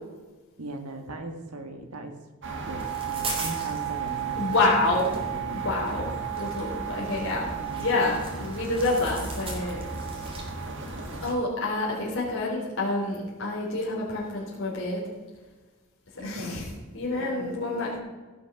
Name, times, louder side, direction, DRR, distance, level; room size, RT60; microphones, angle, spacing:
voice 1, 0.6-2.2 2.4-6.3 7.5-8.0 16.2-16.6 17.2-17.5, right 1 dB, 85° right, 5 dB, 1.8 m, -39 dB
sound 1, 2.4-11.3, right 7 dB, 55° right, 1.8 m, -33 dB
sound 2, 2.8-11.3, right 2 dB, 25° right, 2.7 m, -41 dB
voice 2, 4.4-5.1 5.5-7.5 7.8-9.8 10.1-10.3 11.2-15.1 16.2-16.6 16.9-17.9, left 2 dB, 60° left, -5 dB, 3.2 m, -28 dB
16.0 x 6.4 x 5.9 m, 1.3 s
head